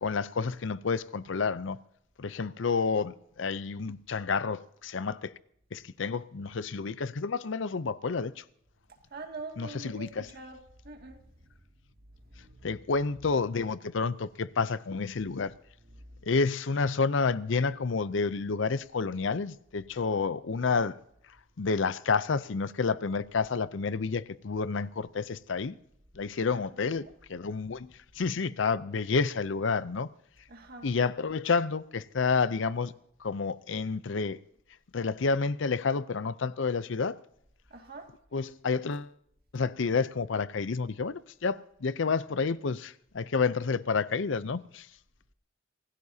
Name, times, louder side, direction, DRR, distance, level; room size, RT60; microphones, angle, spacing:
voice 1, 0.0-1.8 2.2-5.3 5.7-8.4 9.6-10.3 12.6-15.5 16.2-20.9 21.6-25.8 26.2-27.9 28.2-30.1 30.8-32.9 33.2-34.4 34.9-37.2 38.3-39.1 39.5-44.9, left 4 dB, 65° left, 0.6 m, -29 dB
voice 2, 9.1-10.6 10.8-11.2 12.4-12.7 26.5-27.0 30.5-30.9 37.7-38.1, right 3 dB, 50° right, 2.3 m, -44 dB
26.0 x 16.5 x 2.8 m
head